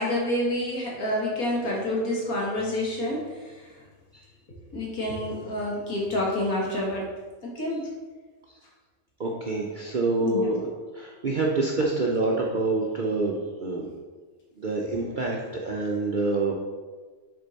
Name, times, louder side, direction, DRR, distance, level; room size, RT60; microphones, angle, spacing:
voice 1, 0.0-3.5 4.7-7.1 7.4-7.9 10.2-10.5, left 1 dB, 75° left, -3 dB, 1.9 m, -28 dB
voice 2, 9.2-10.7 10.9-13.9 14.6-16.5, right 3 dB, 55° right, -2 dB, 0.5 m, -27 dB
6.8 x 3.7 x 4.0 m, 1.4 s
omnidirectional pair, 1.5 m